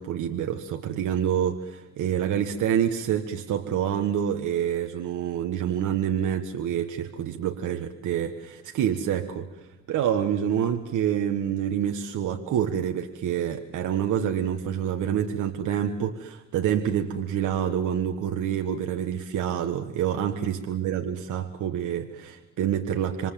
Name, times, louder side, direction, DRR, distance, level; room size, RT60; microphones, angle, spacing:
voice 1, 0.0-9.6 9.9-23.3, right 9 dB, 80° right, 5 dB, 1.6 m, -27 dB
27.5 x 24.0 x 7.6 m, 0.98 s
cardioid pair, 90°, 30 cm